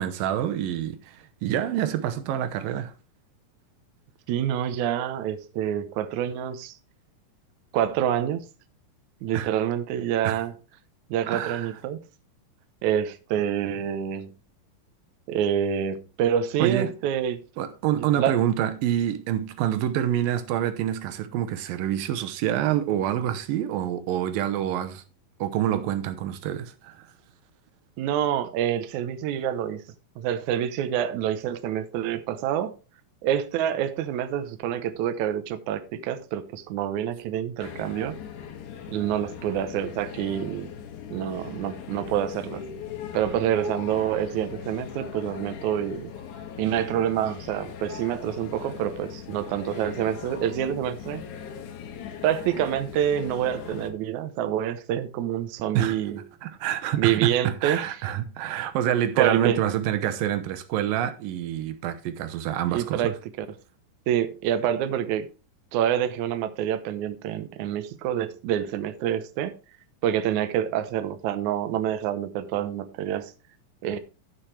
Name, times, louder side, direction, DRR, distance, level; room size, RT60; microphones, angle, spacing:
voice 1, 0.0-2.9 9.3-9.5 10.2-10.4 11.3-11.8 16.6-17.0 17.6-25.0 25.4-27.1 55.7-56.0 56.4-63.1, right 11 dB, 90° right, 2.6 m, -27 dB
voice 2, 4.3-6.7 7.7-8.5 9.2-10.5 11.1-12.0 12.8-14.3 15.3-17.4 17.9-18.4 28.0-29.8 30.2-32.7 33.2-38.2 38.9-40.7 41.1-42.6 43.1-46.1 46.6-51.2 52.2-56.2 57.0-57.9 59.2-59.6 62.7-63.5 64.1-65.3 65.7-69.5 70.0-73.3 73.8-74.0, right 10 dB, 70° right, 2.0 m, -27 dB
sound 1, 37.6-53.9, left 8 dB, 65° left, 2.5 m, -39 dB
14.5 x 5.9 x 3.3 m
omnidirectional pair, 4.0 m